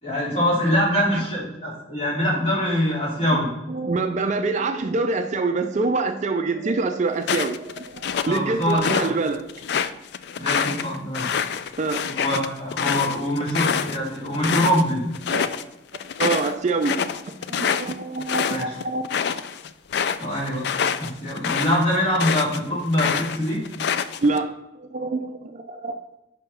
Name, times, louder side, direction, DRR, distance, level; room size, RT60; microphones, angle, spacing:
voice 1, 0.0-3.5 8.2-9.1 10.4-11.3 12.1-15.1 18.5-18.7 20.2-20.6 21.0-23.6, equal, 30° left, -5 dB, 2.6 m, -24 dB
voice 2, 3.7-9.4 11.8-12.0 15.3-15.5 16.2-17.0 17.5-19.0 24.2-24.5 24.8-26.0, right 3 dB, 35° right, 7 dB, 0.4 m, -25 dB
sound 1, 7.2-9.1 9.5-14.8 15.1-15.6 15.9-22.6 22.9-24.4, left 7 dB, 55° left, 0.3 m, -26 dB
5.7 x 4.9 x 5.6 m, 0.94 s
head